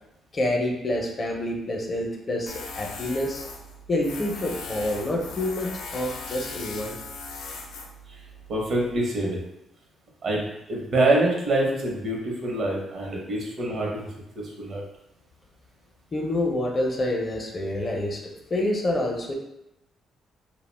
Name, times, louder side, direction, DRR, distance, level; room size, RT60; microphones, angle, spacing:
voice 1, 0.3-3.4 3.9-6.9 16.1-19.3, left 1 dB, 35° left, 1 dB, 0.5 m, -27 dB
Tools, 2.5-9.0, left 3 dB, 85° left, 0.4 m, -39 dB
voice 2, 8.5-9.4 10.2-14.1 14.4-14.8, right 2 dB, 60° right, -2 dB, 0.8 m, -25 dB
2.3 x 2.1 x 3.2 m, 0.87 s
cardioid pair, 90°, 0 cm